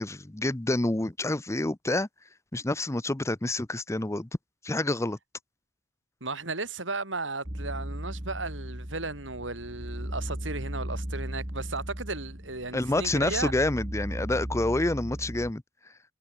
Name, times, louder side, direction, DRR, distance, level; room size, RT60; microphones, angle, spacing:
voice 1, 0.0-2.1 2.5-4.3 4.6-5.2 12.7-15.6, left 2 dB, 15° left, 0.7 m, -28 dB
voice 2, 6.2-13.5, right 3 dB, 80° right, 6.2 m, -35 dB
sound 1, 7.4-15.5, equal, 30° right, 3.1 m, -36 dB
head